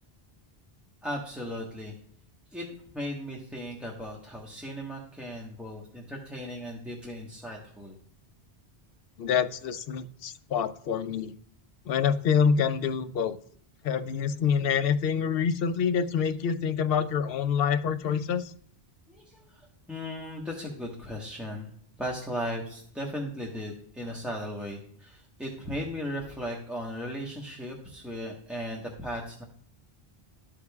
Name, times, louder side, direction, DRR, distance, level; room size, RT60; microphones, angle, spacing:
voice 1, 1.0-2.0 2.5-2.7 2.9-7.9 19.1-21.7 22.0-29.4, equal, ahead, -2 dB, 1.1 m, -37 dB
voice 2, 9.2-11.3 11.9-13.4 13.8-18.5, left 7 dB, 70° left, 11 dB, 0.7 m, -26 dB
13.0 x 4.9 x 2.3 m, 0.64 s
omnidirectional pair, 1.1 m